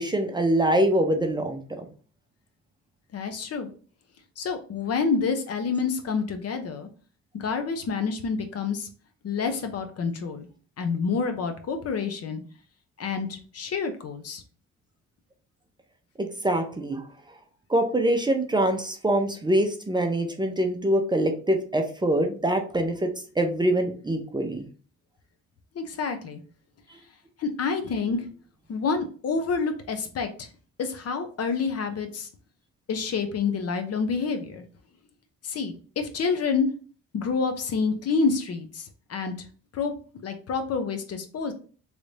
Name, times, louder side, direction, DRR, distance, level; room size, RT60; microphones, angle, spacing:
voice 1, 0.0-1.9 16.2-17.0 17.7-23.1 23.4-24.7, right 1 dB, 15° right, 4 dB, 0.6 m, -24 dB
voice 2, 3.1-3.7 4.4-6.9 7.3-8.9 9.2-10.5 10.8-12.4 13.0-14.4 25.8-26.4 27.4-28.2 28.7-30.5 30.8-32.3 32.9-34.6 35.4-36.7 37.1-39.5 39.7-39.9 40.2-41.5, left 5 dB, 55° left, 7 dB, 0.7 m, -28 dB
3.2 x 2.6 x 3.2 m, 0.39 s
cardioid pair, 90°, 30 cm